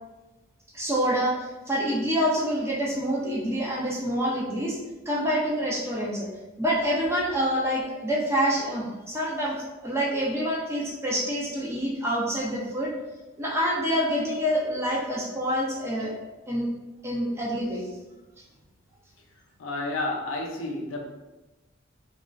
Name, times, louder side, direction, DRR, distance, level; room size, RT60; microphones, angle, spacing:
voice 1, 0.7-4.8 5.1-6.3 6.6-12.9 13.4-16.1 16.5-16.7 17.0-17.9, equal, 15° right, -4 dB, 0.5 m, -27 dB
voice 2, 19.6-21.0, left 2 dB, 70° left, 1 dB, 0.4 m, -30 dB
2.9 x 2.4 x 2.3 m, 1.1 s
head